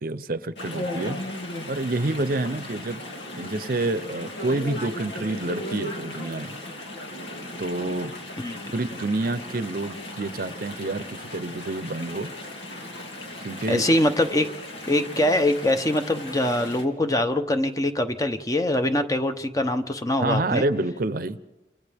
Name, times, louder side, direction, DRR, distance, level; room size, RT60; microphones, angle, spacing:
voice 1, 0.0-1.2 1.7-3.0 3.4-6.6 7.6-8.1 8.7-12.3 13.4-13.9 20.2-21.4, right 2 dB, 50° right, 13 dB, 0.7 m, -28 dB
Chatter / Stream, 0.6-16.8, left 1 dB, 90° left, 2.7 m, -36 dB
voice 2, 13.7-14.5 14.9-20.6, left 1 dB, 20° left, 7 dB, 0.9 m, -23 dB
29.5 x 27.5 x 3.6 m, 1.1 s
head